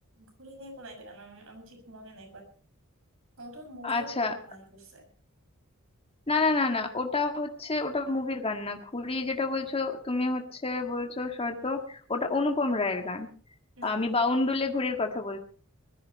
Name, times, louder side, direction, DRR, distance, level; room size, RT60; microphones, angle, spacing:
voice 1, 0.2-2.5 3.4-5.1 13.8-14.0, right 1 dB, 65° right, 5 dB, 6.5 m, -46 dB
voice 2, 3.8-4.3 6.3-13.3 13.8-15.4, left 3 dB, 25° left, 4 dB, 1.7 m, -29 dB
20.5 x 14.0 x 4.2 m, 0.44 s
head